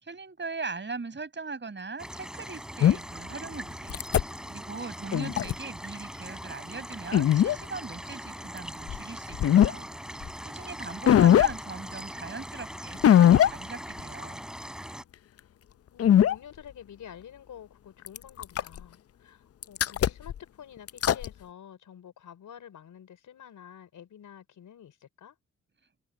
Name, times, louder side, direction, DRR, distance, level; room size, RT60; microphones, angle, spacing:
voice 1, 0.0-4.0 4.5-9.9 10.4-14.4, right 4 dB, 35° right, 6.6 m, -40 dB
sound 1, 2.0-15.0, equal, ahead, 4.0 m, -41 dB
sound 2, 2.8-2.9 3.9-4.2 5.1-5.5 7.1-7.5 8.9-9.0 9.3-9.7 10.2-10.3 11.1-11.5 13.0-13.5 14.0-14.1 16.0-16.3 18.1-18.8 19.6-20.4 20.9-21.3, left 10 dB, 50° left, 0.6 m, -19 dB
voice 2, 10.9-12.1 15.9-25.4, left 9 dB, 70° left, 4.7 m, -49 dB
cardioid pair, 65°, 32 cm